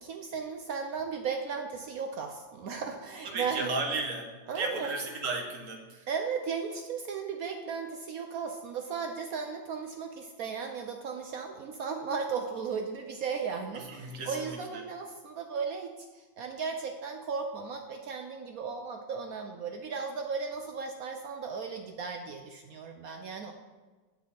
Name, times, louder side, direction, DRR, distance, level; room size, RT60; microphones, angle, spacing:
voice 1, 0.0-3.7 4.5-4.9 6.1-23.5, right 5 dB, 70° right, 4 dB, 0.9 m, -36 dB
voice 2, 3.2-6.1 13.7-14.8, right 3 dB, 50° right, 2 dB, 1.4 m, -35 dB
7.5 x 7.3 x 4.2 m, 1.3 s
omnidirectional pair, 2.0 m